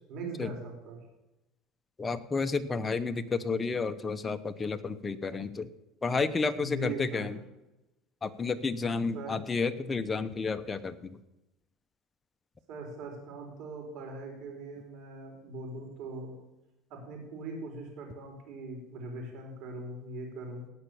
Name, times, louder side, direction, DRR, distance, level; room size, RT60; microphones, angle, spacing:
voice 1, 0.1-1.0 6.5-7.3 9.1-9.4 12.7-16.3 16.9-20.6, right 2 dB, 60° right, 2 dB, 4.9 m, -40 dB
voice 2, 2.0-5.7 6.0-7.4 8.2-11.2, left 4 dB, 20° left, 10 dB, 0.9 m, -31 dB
18.0 x 6.0 x 7.0 m, 0.97 s
supercardioid pair, 120°, 0 cm